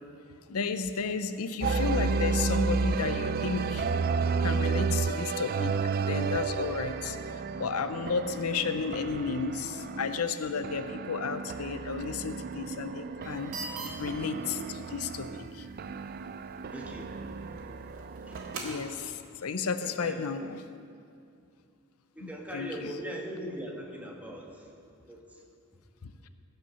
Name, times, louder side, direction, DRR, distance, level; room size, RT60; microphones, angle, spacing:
voice 1, 0.5-3.9 4.4-5.7 6.0-7.2 7.6-13.5 14.0-15.7 18.6-20.6 22.2-22.9 26.0-26.1, left 5 dB, 90° left, 11 dB, 0.6 m, -33 dB
sound 1, 1.6-18.6, right 4 dB, 45° right, 0.4 m, -32 dB
sound 2, 13.2-19.1, right 2 dB, 70° right, 2.1 m, -45 dB
voice 2, 15.4-15.9 16.7-18.4 19.8-20.4 22.1-24.7 25.1-25.4 26.0-26.1, equal, 5° right, 0 dB, 1.3 m, -42 dB
16.5 x 5.7 x 6.9 m, 2.4 s
head